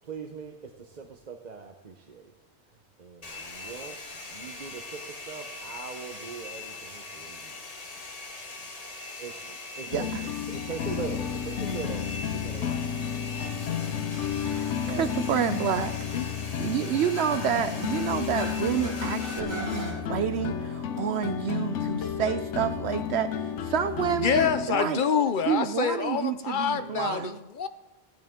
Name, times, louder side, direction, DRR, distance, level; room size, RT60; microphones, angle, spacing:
voice 1, 0.0-2.3 3.0-7.7 8.6-8.7 9.1-12.0 12.3-14.3 14.8-15.1 16.7-17.0 26.7-27.4, right 5 dB, 40° right, 3 dB, 0.9 m, -42 dB
Domestic sounds home sounds, 3.2-19.4, left 3 dB, 35° left, 1.2 m, -41 dB
sound 1, 9.9-24.7, left 8 dB, 85° left, 1.0 m, -32 dB
sound 2, 11.3-22.6, equal, 15° right, 5.2 m, -44 dB
voice 2, 14.4-15.9 16.6-25.0 25.5-27.3, right 8 dB, 70° right, 11 dB, 0.8 m, -29 dB
voice 3, 24.2-27.7, left 7 dB, 55° left, 11 dB, 0.7 m, -26 dB
15.0 x 10.5 x 3.7 m, 1.1 s
omnidirectional pair, 1.2 m